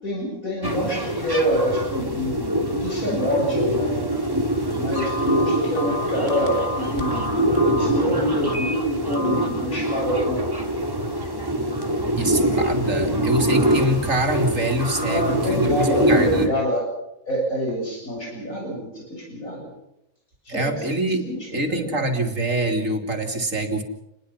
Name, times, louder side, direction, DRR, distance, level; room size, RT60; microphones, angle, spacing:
voice 1, 0.0-4.2 4.7-7.3 7.7-10.6 15.0-16.9 17.3-19.7 20.5-20.8 21.2-22.0, equal, 70° left, -1 dB, 7.9 m, -26 dB
sound 1, 0.6-16.5, right 1 dB, 15° right, 2.9 m, -24 dB
Telephone, 4.9-7.9 8.4-8.7 9.1-9.5, left 1 dB, 55° left, 3.0 m, -30 dB
voice 2, 12.2-16.5 20.5-23.8, right 1 dB, 60° right, 4 dB, 3.4 m, -25 dB
29.5 x 21.0 x 5.8 m, 0.84 s
omnidirectional pair, 1.5 m